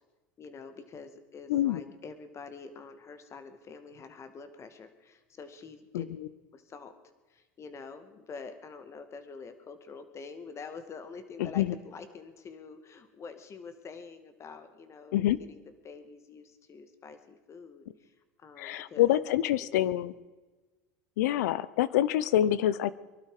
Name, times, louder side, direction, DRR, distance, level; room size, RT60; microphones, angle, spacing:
voice 1, 0.4-6.1 6.5-6.9 7.3-18.1 18.4-19.3 19.7-20.0, left 5 dB, 35° left, 9 dB, 2.0 m, -46 dB
voice 2, 1.5-1.8 5.9-6.3 11.4-11.7 15.1-15.4 18.6-20.1 21.2-22.9, left 12 dB, 80° left, 18 dB, 0.8 m, -26 dB
23.0 x 12.0 x 4.9 m, 1.2 s
supercardioid pair, 100°, 9 cm